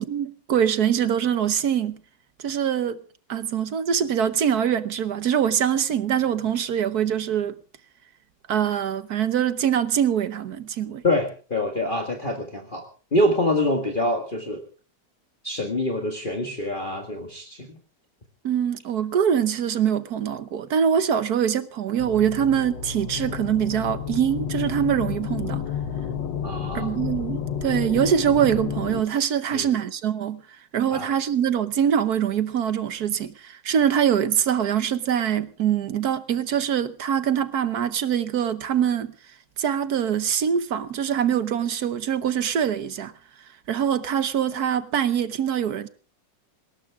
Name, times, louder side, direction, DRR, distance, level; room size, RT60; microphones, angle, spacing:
voice 1, 0.0-2.0 2.4-3.0 3.3-7.5 8.5-11.0 18.4-25.6 26.7-30.4 30.7-39.1 39.6-43.1 43.7-45.9, right 8 dB, 65° right, 1.4 m, -23 dB
voice 2, 11.0-12.9 13.1-14.6 15.4-17.8 26.4-26.9 29.5-29.7 30.9-31.1, left 1 dB, 30° left, 1.9 m, -25 dB
sound 1, 22.0-29.0, left 7 dB, 90° left, 1.8 m, -31 dB
18.5 x 18.0 x 3.6 m
omnidirectional pair, 1.9 m